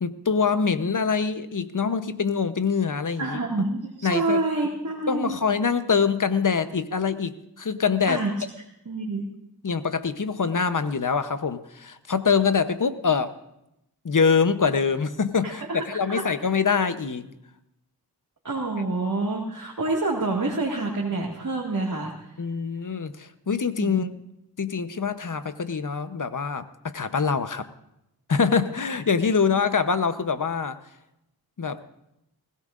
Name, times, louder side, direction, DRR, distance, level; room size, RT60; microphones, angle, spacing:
voice 1, 0.0-3.4 4.0-4.4 5.1-8.2 9.6-13.3 14.0-17.3 22.4-24.1 24.6-27.6 28.3-30.8 31.6-31.8, left 5 dB, 55° left, 11 dB, 0.9 m, -24 dB
voice 2, 3.2-5.4 8.1-8.3 8.9-9.2 15.4-16.2 18.4-22.1 23.8-24.1, right 2 dB, 55° right, -3 dB, 2.1 m, -27 dB
21.0 x 16.0 x 2.5 m, 0.84 s
cardioid pair, 40°, 38 cm